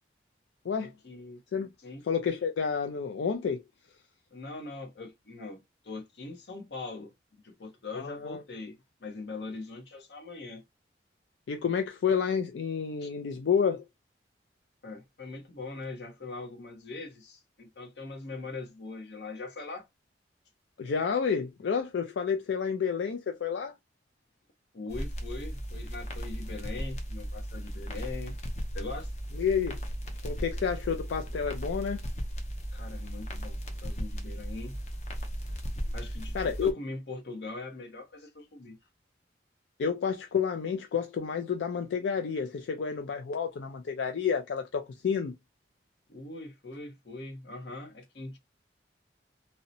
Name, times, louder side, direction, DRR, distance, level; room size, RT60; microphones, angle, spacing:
voice 1, 1.0-1.4 1.8-2.0 4.3-5.6 5.8-10.6 13.0-13.1 14.8-19.9 24.7-28.3 28.7-29.1 32.7-34.8 35.9-38.8 46.1-48.4, left 3 dB, 70° left, 0.8 m, -41 dB
voice 2, 2.1-3.6 7.9-8.4 11.5-13.8 20.8-23.7 29.3-29.8 30.2-32.0 36.3-36.7 39.8-45.3, left 6 dB, 90° left, 0.4 m, -30 dB
sound 1, 24.9-36.7, equal, 40° left, 0.6 m, -36 dB
2.7 x 2.0 x 2.5 m
head